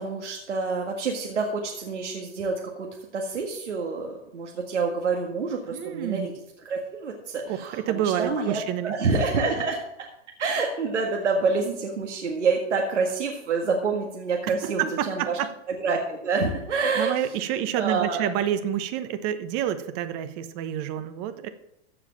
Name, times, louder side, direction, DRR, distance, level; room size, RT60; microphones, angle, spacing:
voice 1, 0.0-2.9 3.1-6.3 6.7-9.8 10.4-15.4 15.7-17.2 17.8-18.3, right 4 dB, 85° right, 1 dB, 1.9 m, -27 dB
voice 2, 5.7-6.3 7.5-9.2 14.6-15.5 17.0-21.5, right 10 dB, 35° right, 10 dB, 1.0 m, -28 dB
14.5 x 5.0 x 7.4 m, 0.82 s
hypercardioid pair, 125°, 35 cm